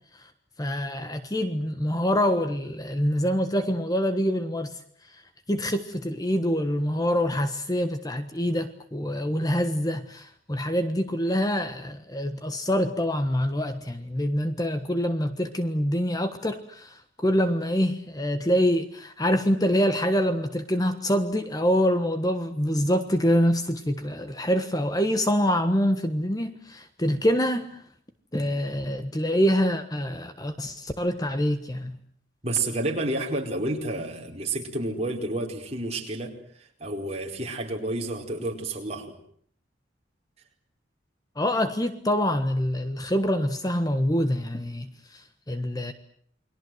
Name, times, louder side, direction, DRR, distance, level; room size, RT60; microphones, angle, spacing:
voice 1, 0.6-4.8 5.1-5.2 5.5-27.8 28.3-32.0 41.4-45.9, equal, 20° left, 9 dB, 1.4 m, -25 dB
voice 2, 32.4-36.3 36.6-39.1, right 2 dB, 35° right, 1 dB, 4.7 m, -30 dB
29.5 x 22.0 x 7.9 m, 0.63 s
head